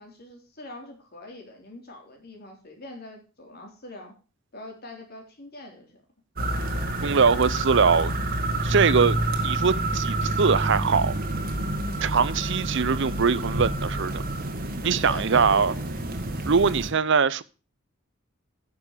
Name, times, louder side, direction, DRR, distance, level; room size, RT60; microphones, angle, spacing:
voice 1, 0.0-4.1 4.5-6.0 11.7-12.0 14.9-16.3, left 1 dB, 50° left, 3.6 m, -43 dB
sound 1, 6.4-16.9, right 1 dB, 45° right, 1.8 m, -28 dB
voice 2, 7.0-8.1 8.6-9.2 9.4-11.1 12.0-14.2 14.8-15.7 16.5-17.4, right 5 dB, 60° right, 0.6 m, -22 dB
10.0 x 7.0 x 6.7 m
head